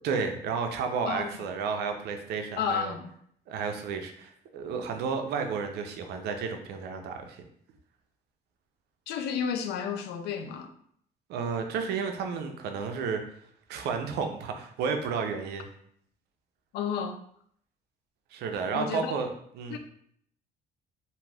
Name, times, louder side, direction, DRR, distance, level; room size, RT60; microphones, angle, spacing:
voice 1, 0.0-2.9 3.5-7.4 11.3-13.2 13.7-15.7 18.3-19.8, right 5 dB, 75° right, 5 dB, 0.5 m, -32 dB
voice 2, 1.1-1.4 2.6-3.1 9.1-10.7 16.7-17.2 18.7-19.1 19.7-19.8, left 7 dB, 75° left, 8 dB, 0.4 m, -32 dB
2.6 x 2.4 x 3.3 m, 0.66 s
cardioid pair, 110°, 17 cm